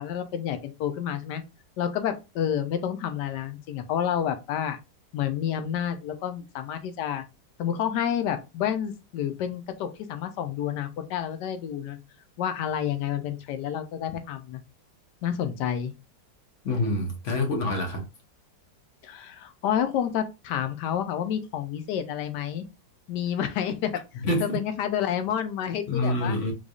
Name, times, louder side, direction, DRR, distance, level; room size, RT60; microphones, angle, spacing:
voice 1, 0.0-1.4 1.8-4.8 5.1-7.2 7.6-12.0 12.4-14.6 15.2-15.9 19.0-22.7 23.1-24.0 24.4-26.4, left 9 dB, 80° left, 1.2 m, -29 dB
voice 2, 16.6-18.0 24.2-24.6 25.9-26.5, left 1 dB, 55° left, 1.0 m, -26 dB
3.9 x 3.2 x 2.3 m
omnidirectional pair, 1.8 m